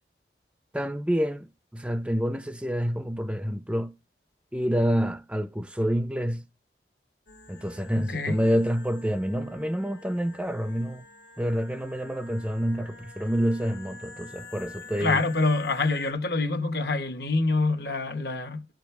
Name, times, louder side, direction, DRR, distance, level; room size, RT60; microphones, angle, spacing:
voice 1, 0.7-3.9 4.5-6.4 7.5-11.0 11.4-15.2, equal, 5° right, 0.4 m, -28 dB
sound 1, 7.3-16.1, left 4 dB, 90° left, 1.9 m, -47 dB
voice 2, 8.0-8.4 15.0-18.7, left 3 dB, 65° left, 1.1 m, -26 dB
12.5 x 5.2 x 4.6 m
head